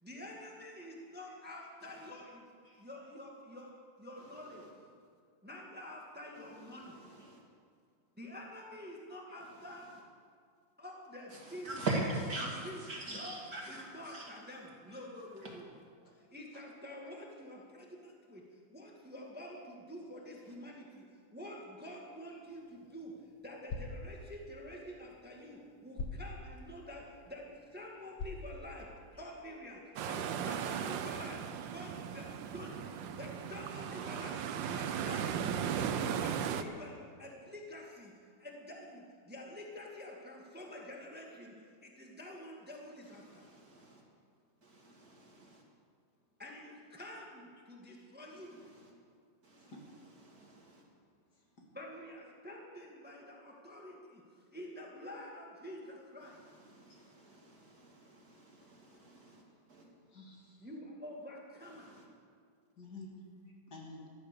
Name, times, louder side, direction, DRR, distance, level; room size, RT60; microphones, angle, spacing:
voice 1, 0.0-2.5 2.8-3.7 4.0-4.7 5.4-7.0 8.2-9.9 10.8-11.7 12.4-12.8 13.1-13.4 13.7-15.6 16.1-18.4 18.7-23.1 23.4-28.9 29.1-31.4 31.7-35.5 35.7-43.5 46.4-48.6 51.7-56.4 60.6-62.0, left 1 dB, 5° right, -1 dB, 1.6 m, -48 dB
voice 2, 4.2-4.7 6.3-7.4 9.4-10.0 11.3-14.3 15.2-15.6 20.5-20.6 43.0-44.0 44.6-45.6 48.3-48.9 49.4-50.8 56.2-59.4 59.7-59.9 61.6-62.0, right 2 dB, 50° right, -2 dB, 2.8 m, -43 dB
sound 1, 22.4-29.4, left 3 dB, 85° left, 2.1 m, -47 dB
sound 2, 30.0-36.6, right 8 dB, 85° right, 1.5 m, -37 dB
voice 3, 51.3-51.7 56.9-57.2 58.7-58.8 60.1-60.7 62.8-63.1 63.7-64.0, left 3 dB, 60° left, -1 dB, 2.9 m, -52 dB
14.0 x 13.0 x 6.7 m, 2.2 s
omnidirectional pair, 2.0 m